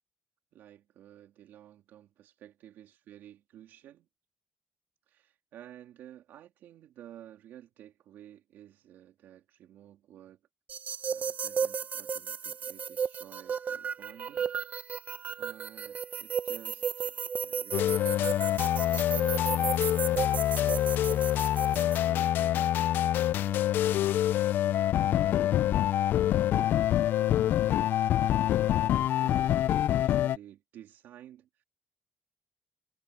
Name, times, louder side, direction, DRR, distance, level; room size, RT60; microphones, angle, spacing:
voice 1, 0.5-4.1 5.1-10.4 11.1-14.5 15.4-21.2 21.7-25.8 26.2-26.3 26.6-31.6, right 11 dB, 85° right, 2.7 m, -53 dB
sound 1, 10.7-22.0, right 6 dB, 45° right, 0.6 m, -34 dB
sound 2, 17.7-30.4, left 12 dB, 75° left, 0.3 m, -26 dB
cardioid pair, 105°, 3 cm